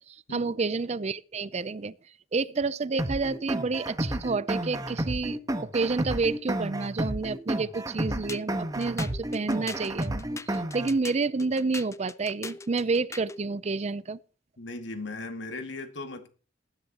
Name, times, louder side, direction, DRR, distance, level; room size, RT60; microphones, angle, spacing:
voice 1, 0.0-1.9 2.3-14.2, right 4 dB, 35° right, 0.5 m, -29 dB
sound 1, 3.0-11.0, right 1 dB, 20° right, 1.2 m, -31 dB
sound 2, 8.3-13.4, left 3 dB, 15° left, 0.5 m, -42 dB
voice 2, 14.6-16.3, left 2 dB, 80° left, 2.1 m, -37 dB
19.5 x 10.5 x 2.9 m
head